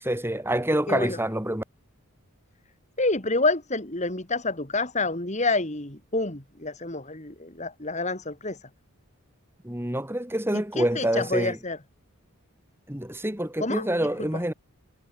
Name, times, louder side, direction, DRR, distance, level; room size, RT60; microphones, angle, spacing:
voice 1, 0.0-1.6 9.6-11.6 12.9-14.5, right 1 dB, 10° right, 2.5 m, -27 dB
voice 2, 0.9-1.2 3.0-8.6 10.5-11.8 13.6-14.3, left 3 dB, 30° left, 2.9 m, -28 dB
head